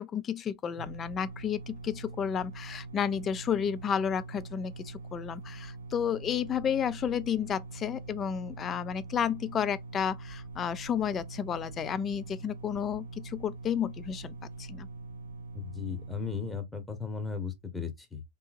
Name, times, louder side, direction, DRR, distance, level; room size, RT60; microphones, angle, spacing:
voice 1, 0.0-14.9, left 8 dB, 30° left, 0.4 m, -32 dB
sound 1, 0.8-16.5, right 3 dB, 90° right, 0.7 m, -44 dB
voice 2, 15.5-18.2, left 6 dB, 10° left, 1.0 m, -36 dB
3.7 x 2.7 x 2.6 m
hypercardioid pair, 105°, 0 cm